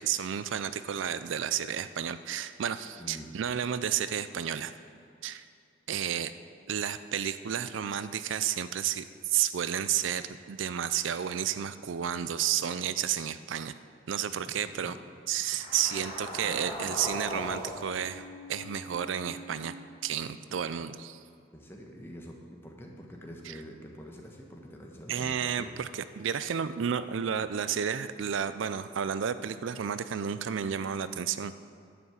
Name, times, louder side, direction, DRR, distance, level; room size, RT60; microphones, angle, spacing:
voice 1, 0.0-4.7 5.2-5.4 5.9-6.3 6.7-13.7 14.1-14.9 15.3-19.7 20.0-21.2 25.1-31.5, right 8 dB, 80° right, 13 dB, 0.4 m, -31 dB
voice 2, 3.0-3.3 14.3-14.9 15.5-15.6 20.5-20.6 21.5-25.8, equal, 10° left, 0 dB, 1.2 m, -46 dB
sound 1, 15.4-19.8, equal, 30° left, 2.4 m, -40 dB
11.0 x 6.2 x 8.0 m, 2.5 s
head